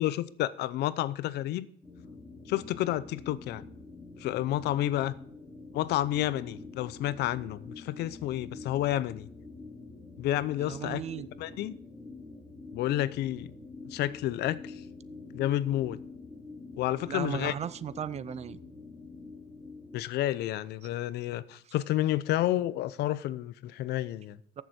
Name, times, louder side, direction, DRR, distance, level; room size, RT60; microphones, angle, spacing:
voice 1, 0.0-1.7 2.5-3.6 4.2-5.1 5.7-9.3 10.2-11.0 11.4-11.7 12.7-13.5 13.9-14.7 15.3-16.0 16.8-17.5 19.9-24.4, left 14 dB, 75° left, 0.6 m, -30 dB
sound 1, 1.8-20.0, left 3 dB, 10° left, 2.9 m, -46 dB
voice 2, 10.6-11.3 17.1-18.6 21.7-21.8 24.6-24.7, right 8 dB, 40° right, 0.5 m, -36 dB
14.5 x 7.0 x 4.3 m
cardioid pair, 110°, 17 cm